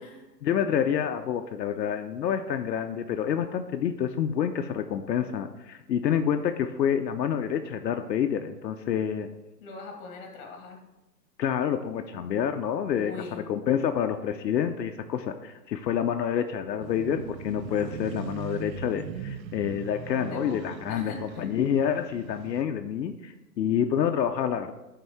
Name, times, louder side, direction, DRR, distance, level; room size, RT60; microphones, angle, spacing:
voice 1, 0.4-9.3 11.4-24.7, left 8 dB, 80° left, 6 dB, 0.6 m, -28 dB
voice 2, 9.6-10.8 12.9-13.5 20.3-21.5, left 4 dB, 30° left, 2 dB, 1.6 m, -42 dB
sound 1, 16.8-22.6, right 7 dB, 80° right, 0.7 m, -39 dB
10.5 x 3.7 x 3.5 m, 1.0 s
hypercardioid pair, 140°, 50 cm